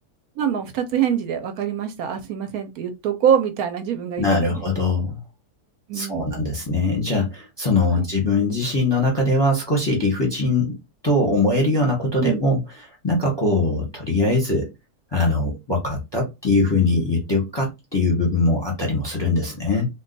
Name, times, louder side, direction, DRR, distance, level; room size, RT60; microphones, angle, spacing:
voice 1, 0.4-4.6 5.9-6.6 7.9-8.0 12.2-12.5, right 8 dB, 75° right, 1.0 m, -24 dB
voice 2, 4.2-5.2 5.9-10.8 11.0-14.7 15.1-19.9, left 2 dB, 20° left, 0.7 m, -21 dB
2.6 x 2.3 x 3.8 m
omnidirectional pair, 1.7 m